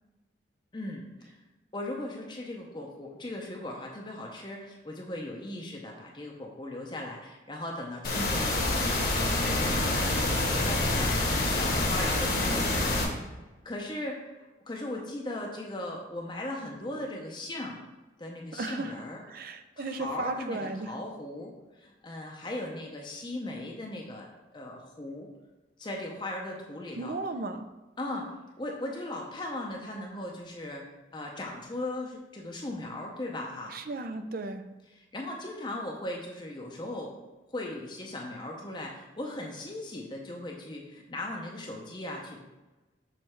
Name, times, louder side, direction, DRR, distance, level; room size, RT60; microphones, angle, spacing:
voice 1, 0.7-1.4 1.7-9.1 9.4-13.0 13.6-17.8 18.2-19.2 19.8-25.3 25.8-27.2 28.0-33.7 35.1-37.2 37.5-42.4, left 1 dB, 25° left, 0 dB, 0.6 m, -38 dB
sound 1, 8.0-13.0, left 2 dB, 55° left, 1.1 m, -27 dB
voice 2, 18.5-19.0 19.3-21.0 27.0-27.7 33.7-34.7, right 3 dB, 50° right, 9 dB, 0.4 m, -35 dB
6.5 x 3.2 x 4.5 m, 1.1 s
head